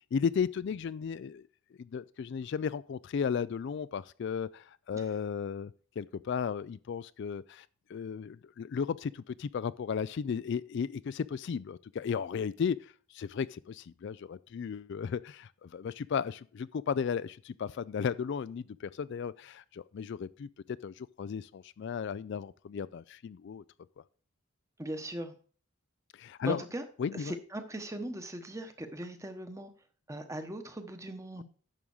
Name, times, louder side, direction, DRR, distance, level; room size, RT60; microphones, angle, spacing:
voice 1, 0.1-1.5 1.8-23.6 26.1-26.6 27.0-27.4, left 6 dB, 55° left, 0.3 m, -35 dB
voice 2, 24.8-25.3 26.4-26.8 27.1-29.7 30.1-31.4, right 1 dB, 15° right, 1.0 m, -39 dB
11.0 x 3.7 x 7.1 m
head